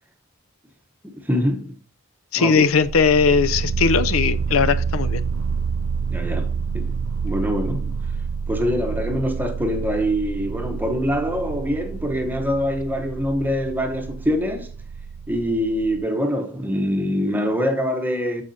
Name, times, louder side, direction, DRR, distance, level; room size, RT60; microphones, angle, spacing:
voice 1, 1.0-1.8 2.3-2.7 6.1-7.0 7.2-7.9 8.5-14.7 15.3-18.4, equal, 10° right, 0.9 m, -24 dB
voice 2, 2.3-5.2, left 5 dB, 70° left, 0.5 m, -19 dB
sound 1, 2.7-16.1, right 5 dB, 65° right, 0.3 m, -28 dB
14.0 x 4.9 x 2.7 m
head